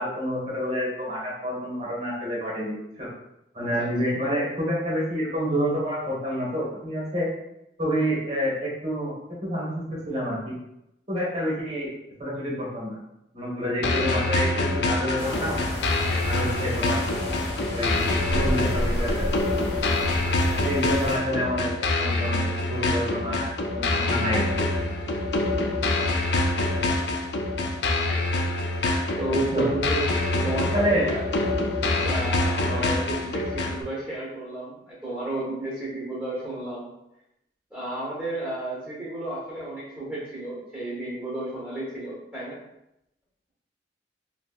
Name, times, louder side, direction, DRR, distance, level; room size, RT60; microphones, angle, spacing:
voice 1, 0.0-3.1 3.5-7.3 7.8-9.1 9.4-10.5 11.1-11.9 12.2-13.0 13.3-14.5 14.8-15.6 16.2-17.0 17.7-18.0 18.3-19.3 20.6-24.7 29.3-29.7 30.7-31.0, equal, 40° right, -6 dB, 1.3 m, -28 dB
sound 1, 13.8-33.8, left 2 dB, 70° left, 0.4 m, -26 dB
sound 2, 15.2-21.2, left 1 dB, 90° left, 0.7 m, -31 dB
voice 2, 29.2-30.1 30.4-31.2 32.0-36.9 37.7-42.6, right 1 dB, 10° right, -10 dB, 1.1 m, -32 dB
3.0 x 2.9 x 2.4 m, 0.85 s
head